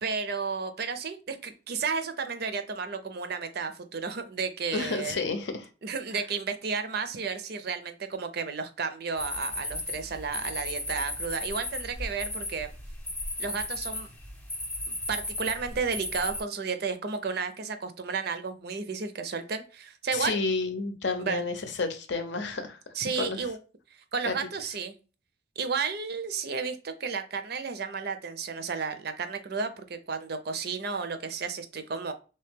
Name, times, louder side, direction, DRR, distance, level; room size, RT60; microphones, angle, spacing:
voice 1, 0.0-5.2 5.8-12.7 13.4-14.1 14.9-20.4 21.2-21.4 22.9-23.6 24.1-24.9 25.6-32.1, right 5 dB, 55° right, 9 dB, 0.5 m, -32 dB
voice 2, 4.7-5.7 20.1-22.8 23.2-23.5 24.2-24.3, left 3 dB, 60° left, 8 dB, 0.7 m, -30 dB
They Respond, 9.2-16.4, left 1 dB, 5° left, 0.6 m, -35 dB
3.4 x 2.8 x 3.5 m, 0.34 s
head